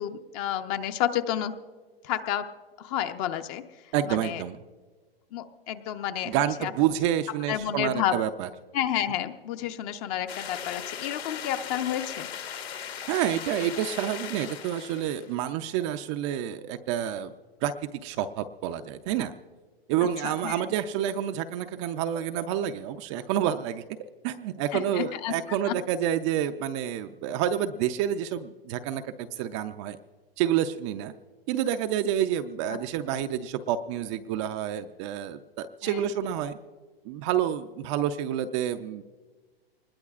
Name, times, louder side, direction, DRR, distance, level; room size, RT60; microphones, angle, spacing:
voice 1, 0.0-1.6 2.0-2.5 2.8-3.6 4.0-4.4 5.3-6.3 6.6-6.7 7.5-8.2 8.7-12.3 20.2-20.6 24.7-25.3 25.7-25.8 32.7-32.8 35.8-36.0, left 11 dB, 35° left, 9 dB, 0.8 m, -30 dB
voice 2, 3.9-4.6 6.2-8.5 13.1-17.3 17.6-19.3 19.9-23.8 24.2-30.0 30.4-31.1 31.5-36.6 37.1-39.0, right 10 dB, 30° right, 8 dB, 0.4 m, -28 dB
sound 1, 10.3-15.3, left 8 dB, 80° left, 1.8 m, -38 dB
24.5 x 20.5 x 2.4 m, 1.4 s
hypercardioid pair, 135°, 31 cm